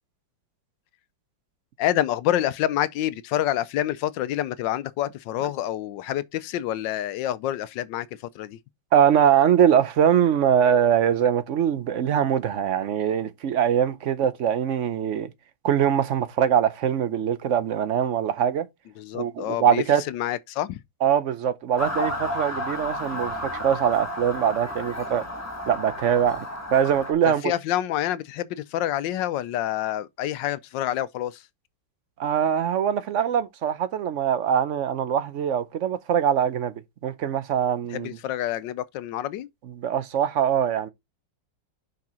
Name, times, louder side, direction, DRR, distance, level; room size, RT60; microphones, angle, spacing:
voice 1, 1.8-8.1 8.3-8.6 19.0-20.8 27.2-31.4 37.9-39.5, left 12 dB, 85° left, 1.3 m, -27 dB
voice 2, 8.9-15.3 15.6-18.7 19.1-20.0 21.0-25.3 25.7-26.5 26.7-27.5 32.2-38.1 39.8-40.9, right 9 dB, 65° right, 0.7 m, -22 dB
Motor vehicle (road) / Siren, 21.8-27.1, left 1 dB, 10° left, 1.4 m, -32 dB
6.0 x 5.8 x 4.2 m
omnidirectional pair, 2.0 m